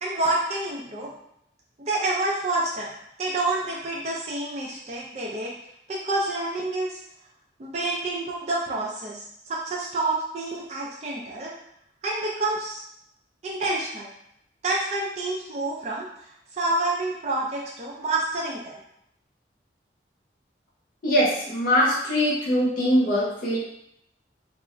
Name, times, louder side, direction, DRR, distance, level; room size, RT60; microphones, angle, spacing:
voice 1, 0.0-1.1 1.8-2.9 3.2-5.5 5.9-7.0 7.6-11.5 12.0-12.8 13.4-14.1 14.6-16.3 16.6-18.7, right 2 dB, 40° right, -3 dB, 0.4 m, -28 dB
voice 2, 21.0-23.6, equal, 50° left, -5 dB, 0.7 m, -22 dB
2.4 x 2.0 x 3.6 m, 0.75 s
head